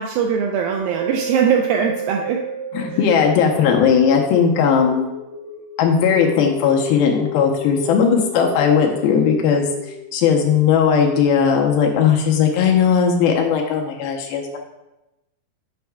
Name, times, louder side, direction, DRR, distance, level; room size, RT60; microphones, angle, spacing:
voice 1, 0.0-2.4 2.9-3.0, right 7 dB, 85° right, 3 dB, 2.1 m, -21 dB
sound 1, 0.9-11.2 11.7-11.8, equal, 70° right, 3.3 m, -32 dB
voice 2, 2.7-5.1 5.8-9.7 10.1-14.6, left 7 dB, 80° left, 1 dB, 2.4 m, -17 dB
7.9 x 5.5 x 3.5 m, 0.97 s
omnidirectional pair, 4.6 m